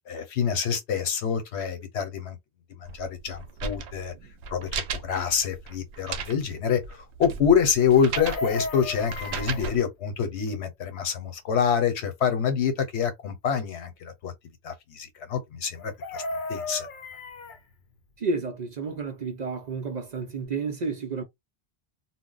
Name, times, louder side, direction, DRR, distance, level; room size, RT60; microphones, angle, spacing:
voice 1, 0.0-2.4 2.8-4.1 4.5-14.3 14.6-16.2 16.5-16.9, left 7 dB, 80° left, 1.0 m, -26 dB
sound 1, 2.8-9.8, right 6 dB, 85° right, 0.9 m, -36 dB
Chicken rooster, 7.9-9.7 15.8-17.6 19.8-19.9 20.2-20.5, left 2 dB, 55° left, 0.7 m, -35 dB
voice 2, 18.2-21.2, right 4 dB, 50° right, 0.6 m, -31 dB
2.2 x 2.0 x 3.8 m
omnidirectional pair, 1.1 m